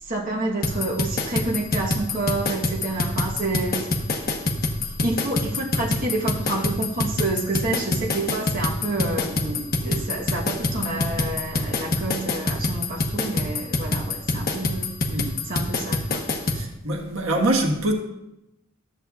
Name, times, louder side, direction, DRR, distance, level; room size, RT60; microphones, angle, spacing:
voice 1, 0.0-3.9 4.2-4.3 5.0-15.0 15.4-16.3, right 2 dB, 45° right, 1.1 m, -28 dB
sound 1, 0.6-16.6, left 2 dB, 45° left, 1.0 m, -25 dB
voice 2, 16.5-17.9, right 1 dB, 85° right, 1.5 m, -24 dB
13.5 x 7.9 x 2.4 m
head